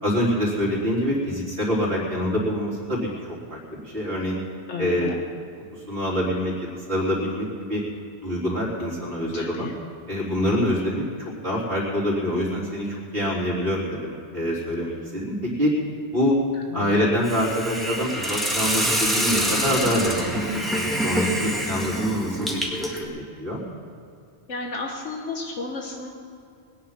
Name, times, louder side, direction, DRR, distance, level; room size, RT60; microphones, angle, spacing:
voice 1, 0.0-3.1 3.5-4.4 4.8-5.1 5.7-7.8 8.2-9.7 10.1-15.8 16.1-16.4 16.7-23.6, equal, 50° right, -6 dB, 4.0 m, -25 dB
voice 2, 4.7-5.2 9.3-9.7 16.7-17.1 24.5-26.1, left 4 dB, 75° left, 1 dB, 1.5 m, -32 dB
Hiss, 17.2-23.1, equal, ahead, 2.0 m, -26 dB
21.5 x 9.6 x 5.8 m, 2.4 s
omnidirectional pair, 1.2 m